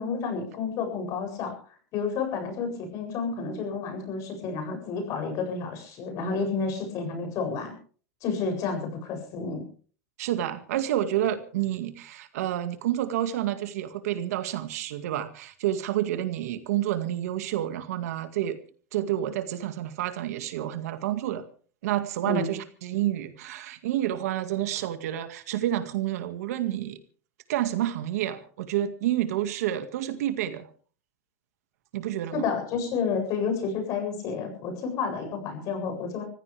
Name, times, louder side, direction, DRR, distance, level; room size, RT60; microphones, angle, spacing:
voice 1, 0.0-1.5 1.9-7.7 8.2-9.6 22.2-22.5 32.3-36.2, left 5 dB, 40° left, 5 dB, 7.8 m, -30 dB
voice 2, 10.2-18.6 18.9-21.4 21.8-27.0 27.5-30.7 31.9-32.5, right 12 dB, 75° right, 9 dB, 2.0 m, -29 dB
24.5 x 15.5 x 3.5 m, 0.43 s
supercardioid pair, 140°, 8 cm